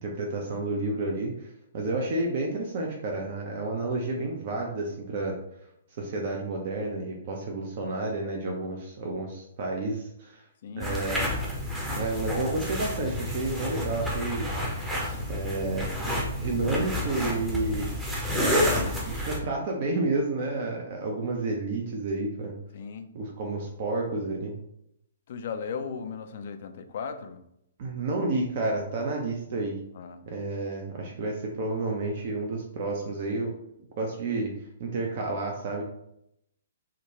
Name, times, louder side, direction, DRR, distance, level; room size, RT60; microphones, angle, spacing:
voice 1, 0.0-1.5 1.7-5.3 6.0-10.4 10.8-11.3 11.9-14.5 15.3-15.9 16.4-17.9 19.0-22.5 23.1-24.5 27.8-29.8 30.2-33.5 34.0-34.5 34.8-35.8, right 2 dB, 40° right, 0 dB, 0.5 m, -30 dB
voice 2, 10.6-11.2 22.7-23.1 25.3-27.4 29.9-30.2, left 6 dB, 45° left, 9 dB, 0.3 m, -37 dB
sound 1, 10.8-19.4, left 1 dB, 5° right, 0.7 m, -29 dB
3.6 x 2.2 x 2.9 m, 0.77 s
figure-of-eight pair, 120°, 0 cm